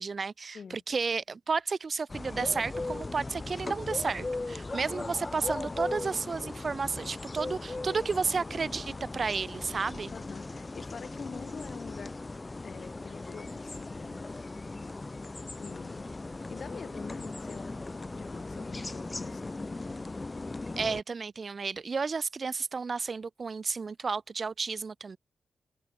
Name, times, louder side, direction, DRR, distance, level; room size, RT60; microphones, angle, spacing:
voice 1, 0.0-10.1 20.8-25.2, right 4 dB, 50° right, 2.0 m, -32 dB
sound 1, 2.1-21.0, left 2 dB, 30° left, 1.5 m, -38 dB
voice 2, 10.1-12.1 12.6-14.4 15.6-16.1 16.5-17.7 18.1-19.5, left 6 dB, 60° left, 7.7 m, -46 dB
cardioid pair, 60°, 0 cm